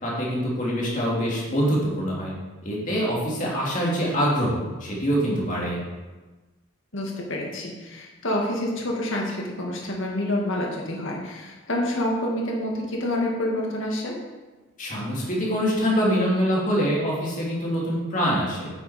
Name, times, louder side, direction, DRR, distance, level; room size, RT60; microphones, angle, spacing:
voice 1, 0.0-2.3 2.6-5.8 14.8-18.7, equal, 35° left, -5 dB, 2.8 m, -24 dB
voice 2, 6.9-14.1, left 1 dB, 60° left, -1 dB, 2.1 m, -28 dB
9.3 x 8.2 x 4.4 m, 1.2 s
head